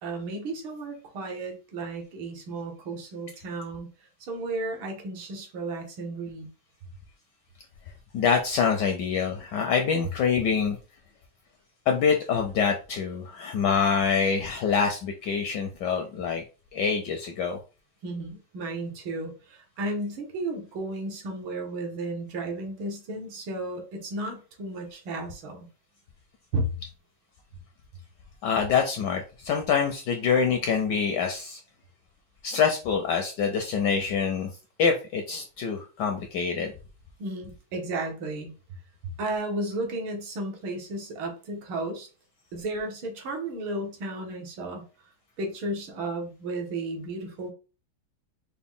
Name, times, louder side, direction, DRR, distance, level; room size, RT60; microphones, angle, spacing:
voice 1, 0.0-6.5 18.0-25.7 26.5-26.7 37.2-38.5 39.2-42.1 42.5-44.8 45.4-47.5, right 2 dB, 70° right, 2 dB, 1.7 m, -33 dB
voice 2, 8.1-10.8 11.9-16.4 16.7-17.6 28.4-31.6 32.4-34.5 34.8-36.7, left 6 dB, 75° left, 4 dB, 1.0 m, -25 dB
4.8 x 2.1 x 3.6 m, 0.35 s
omnidirectional pair, 2.3 m